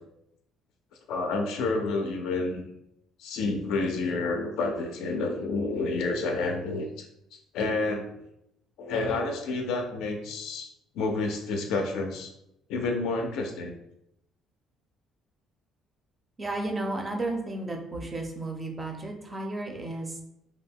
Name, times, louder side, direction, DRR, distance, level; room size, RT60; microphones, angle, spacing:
voice 1, 1.1-2.6 3.2-7.1 7.5-8.1 8.8-10.7 11.0-12.3 12.7-13.7, left 3 dB, 80° left, 3 dB, 0.3 m, -29 dB
voice 2, 16.4-20.2, right 2 dB, 20° right, 2 dB, 0.4 m, -33 dB
2.3 x 2.0 x 3.5 m, 0.81 s
cardioid pair, 145°, 0 cm